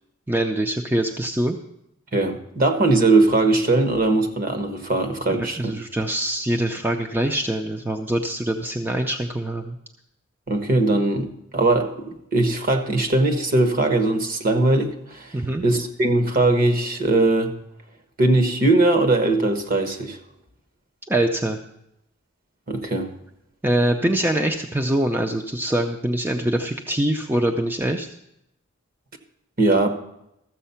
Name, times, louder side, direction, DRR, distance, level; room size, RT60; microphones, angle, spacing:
voice 1, 0.3-1.6 5.3-9.8 15.3-15.6 21.1-21.6 23.6-28.1, right 1 dB, 10° right, 3 dB, 0.5 m, -24 dB
voice 2, 2.1-5.7 10.5-15.3 15.6-17.5 18.2-20.2 22.7-23.1 29.6-29.9, right 2 dB, 45° right, 6 dB, 1.2 m, -20 dB
13.5 x 7.4 x 5.7 m, 0.80 s
head